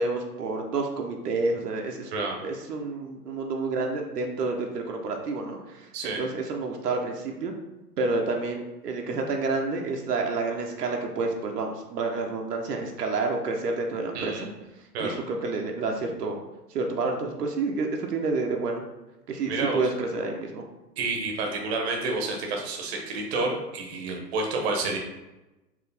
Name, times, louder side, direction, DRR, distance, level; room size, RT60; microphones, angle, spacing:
voice 1, 0.0-7.5 8.0-14.5 15.0-16.4 16.7-18.8 19.3-20.6, right 3 dB, 70° right, 2 dB, 0.9 m, -29 dB
voice 2, 5.9-6.2 14.1-14.4 14.9-15.2 19.5-19.8 21.0-25.0, right 3 dB, 40° right, 1 dB, 1.0 m, -29 dB
4.8 x 3.1 x 3.4 m, 1.0 s
hypercardioid pair, 140°, 49 cm